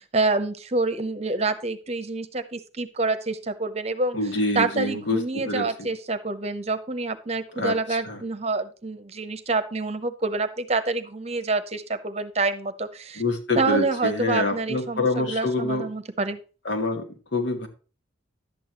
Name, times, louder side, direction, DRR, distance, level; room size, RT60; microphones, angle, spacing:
voice 1, 0.0-4.2 4.5-13.2 13.6-16.4, right 3 dB, 35° right, 11 dB, 0.9 m, -27 dB
voice 2, 4.1-5.9 7.5-8.2 13.2-15.9 16.6-17.7, left 2 dB, 75° left, 2 dB, 2.2 m, -26 dB
11.5 x 8.6 x 3.0 m, 0.36 s
head